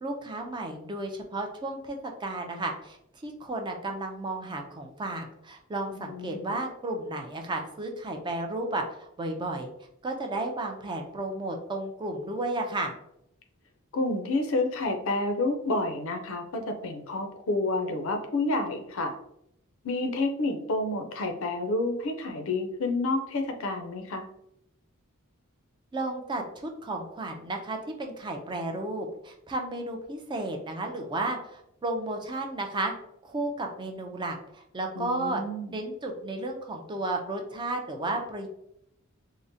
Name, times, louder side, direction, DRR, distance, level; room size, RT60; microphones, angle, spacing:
voice 1, 0.0-3.0 3.2-9.7 10.0-12.9 25.9-32.9 33.2-35.4 35.7-38.5, right 2 dB, 20° right, 3 dB, 0.4 m, -33 dB
voice 2, 5.9-6.6 13.9-19.2 19.8-24.3 35.0-35.8, left 2 dB, 65° left, 5 dB, 0.5 m, -29 dB
3.6 x 2.1 x 2.6 m, 0.77 s
head